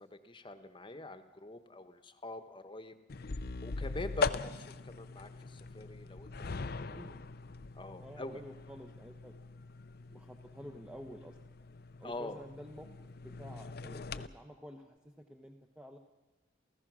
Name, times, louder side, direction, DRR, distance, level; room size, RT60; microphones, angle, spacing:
voice 1, 0.0-2.9 3.6-6.3 6.6-6.9 7.7-8.4 12.0-12.4, left 2 dB, 25° left, 9 dB, 1.2 m, -45 dB
sound 1, 3.1-14.3, left 4 dB, 55° left, 0.7 m, -41 dB
voice 2, 6.8-7.2 8.0-9.4 10.1-11.4 12.0-16.0, equal, 5° right, 3 dB, 1.0 m, -50 dB
28.5 x 15.5 x 6.3 m, 1.2 s
head